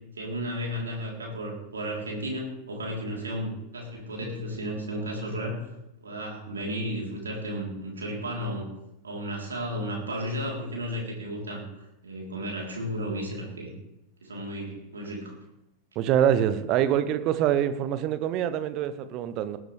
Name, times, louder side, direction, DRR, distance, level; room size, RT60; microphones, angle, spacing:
voice 1, 0.2-5.6 6.0-8.7 9.0-13.7 14.2-15.4, equal, 70° right, -2 dB, 3.5 m, -33 dB
voice 2, 15.9-19.6, right 10 dB, 40° right, 13 dB, 1.0 m, -25 dB
19.0 x 12.5 x 3.3 m, 0.87 s
figure-of-eight pair, 90°, 0 cm